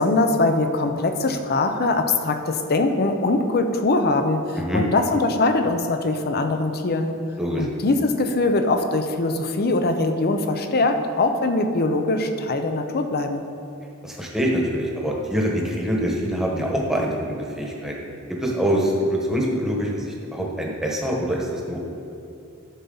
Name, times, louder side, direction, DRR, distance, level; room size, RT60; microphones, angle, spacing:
voice 1, 0.0-7.2 7.6-13.4, left 2 dB, 45° left, 7 dB, 0.7 m, -22 dB
voice 2, 14.0-18.1 18.4-21.8, equal, ahead, -2 dB, 1.3 m, -25 dB
12.0 x 7.0 x 4.0 m, 2.7 s
head